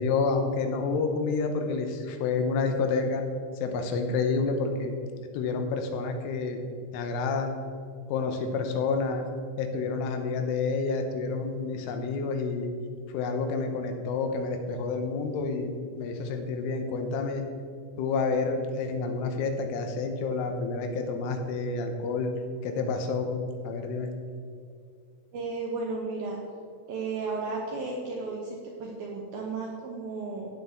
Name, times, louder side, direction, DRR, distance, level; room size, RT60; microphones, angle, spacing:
voice 1, 0.0-3.2 3.6-4.9 5.3-6.6 6.9-7.5 8.1-9.2 9.6-12.7 13.1-17.4 18.0-22.3 22.6-23.4 23.6-24.1, left 4 dB, 85° left, 5 dB, 3.4 m, -29 dB
voice 2, 25.3-26.4 26.9-30.5, right 3 dB, 80° right, -1 dB, 2.1 m, -34 dB
16.0 x 8.1 x 3.6 m, 2.3 s
omnidirectional pair, 5.7 m